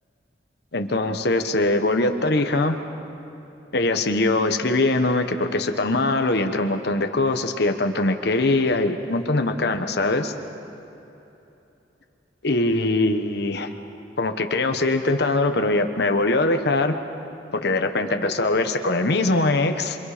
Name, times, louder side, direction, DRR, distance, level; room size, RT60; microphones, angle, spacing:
voice 1, 0.7-2.8 3.7-10.3 12.4-13.7 14.2-17.0 17.5-20.0, left 2 dB, 60° left, 6 dB, 1.2 m, -22 dB
27.5 x 25.0 x 5.1 m, 3.0 s
head